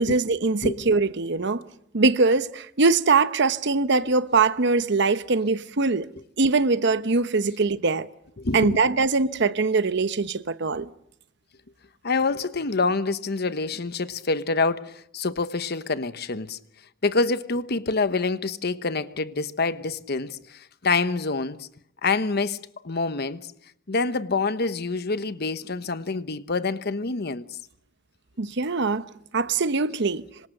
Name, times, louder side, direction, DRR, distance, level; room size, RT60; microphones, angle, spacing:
voice 1, 0.0-1.6 1.9-6.1 6.4-8.1 8.5-10.9 28.4-29.0 29.3-30.2, right 3 dB, 60° right, 0.9 m, -22 dB
voice 2, 8.4-8.8 12.0-16.6 17.0-21.7 22.0-23.5 23.9-27.5, left 3 dB, 55° left, 1.0 m, -26 dB
26.5 x 25.0 x 6.7 m
head